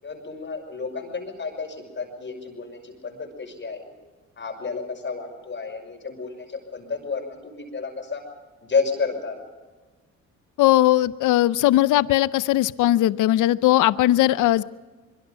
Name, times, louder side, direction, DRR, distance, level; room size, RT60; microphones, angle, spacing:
voice 1, 0.0-3.9 4.4-8.2 8.6-9.4, left 4 dB, 40° left, 3 dB, 6.0 m, -31 dB
voice 2, 10.6-14.6, left 14 dB, 85° left, 16 dB, 0.7 m, -19 dB
25.0 x 23.0 x 5.3 m, 1.3 s
cardioid pair, 90°, 30 cm